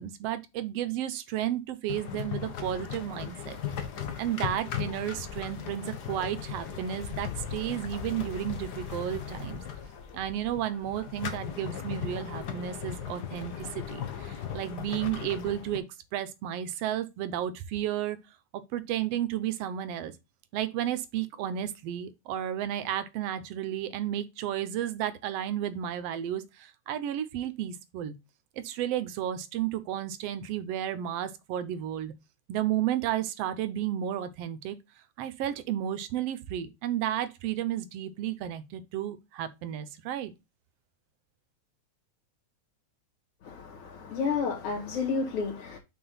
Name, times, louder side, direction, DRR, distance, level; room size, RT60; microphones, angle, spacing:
voice 1, 0.0-3.6 4.2-9.6 10.1-15.8 16.1-18.2 18.5-20.1 20.5-28.1 28.6-32.1 32.5-34.8 35.2-40.3, right 11 dB, 70° right, 1.6 m, -32 dB
sound 1, 1.9-15.8, left 8 dB, 60° left, 1.1 m, -37 dB
voice 2, 43.4-45.8, left 5 dB, 75° left, 3.2 m, -31 dB
6.0 x 4.7 x 5.5 m
omnidirectional pair, 3.3 m